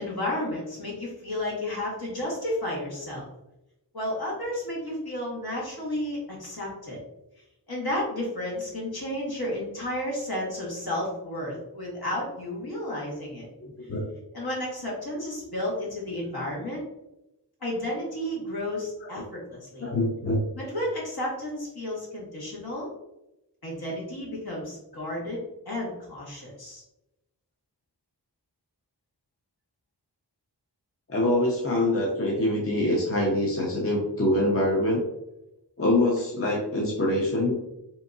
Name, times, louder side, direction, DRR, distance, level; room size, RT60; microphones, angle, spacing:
voice 1, 0.0-3.3 3.9-7.0 7.7-13.5 14.3-16.8 17.6-19.9 20.6-22.9 23.6-26.8, left 1 dB, 60° left, -5 dB, 1.4 m, -32 dB
voice 2, 19.8-20.4 31.1-35.0 35.8-37.5, left 1 dB, 35° left, -2 dB, 0.6 m, -24 dB
3.4 x 2.8 x 2.6 m, 0.90 s
wide cardioid pair, 65°, 41 cm